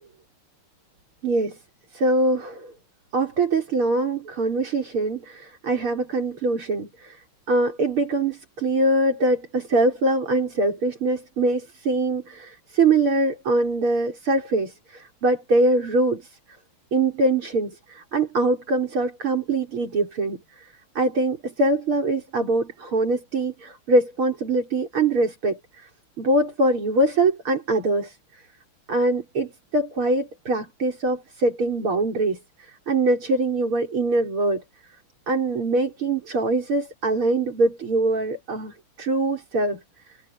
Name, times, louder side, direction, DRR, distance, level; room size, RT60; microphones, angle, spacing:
voice 1, 1.2-1.6 1.9-2.7 3.1-7.2 7.5-16.3 16.9-20.7 20.9-25.9 26.2-28.2 28.9-34.6 35.3-39.8, right 2 dB, 80° right, 6.6 m, -23 dB
omnidirectional pair, 2.3 m